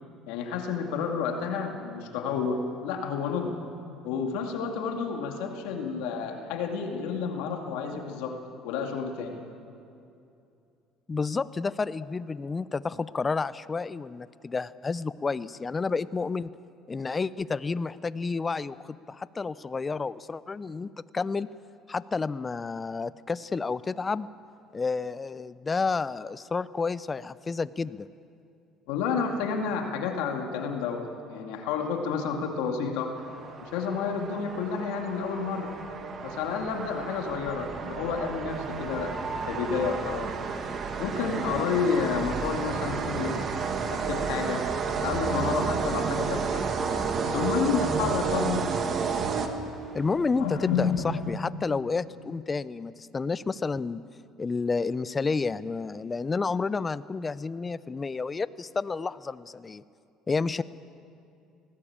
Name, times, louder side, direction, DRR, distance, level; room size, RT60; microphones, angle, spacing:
voice 1, 0.3-3.5 4.0-8.4 8.6-9.4 28.9-33.1 33.6-35.7 36.2-39.2 39.5-40.3 41.0-43.5 43.9-44.6 44.9-46.6 47.2-48.8 50.4-51.2, left 6 dB, 85° left, 3 dB, 2.3 m, -30 dB
voice 2, 11.1-16.5 16.9-21.5 21.9-24.3 24.7-28.1 49.9-54.0 54.4-59.8 60.3-60.6, left 4 dB, 25° left, 17 dB, 0.6 m, -30 dB
sound 1, 33.2-50.0, right 5 dB, 45° right, 1.9 m, -31 dB
sound 2, 38.5-51.4, right 2 dB, 20° right, 3.4 m, -47 dB
19.5 x 17.5 x 8.8 m, 2.6 s
cardioid pair, 100°, 0 cm